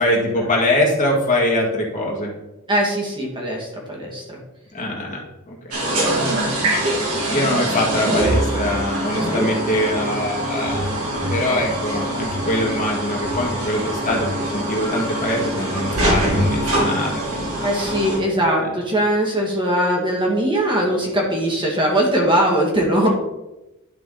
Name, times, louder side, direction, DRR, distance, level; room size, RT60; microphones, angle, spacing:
voice 1, 0.0-2.3 4.7-5.2 5.5-6.0 7.3-17.6 18.6-18.8, left 1 dB, 35° left, -2 dB, 1.8 m, -23 dB
voice 2, 2.7-4.4 6.2-6.5 9.2-9.5 17.6-23.1, right 1 dB, 20° right, -2 dB, 1.7 m, -21 dB
sound 1, 5.7-18.2, right 1 dB, 70° right, 3.0 m, -23 dB
11.5 x 4.9 x 3.8 m, 0.98 s
head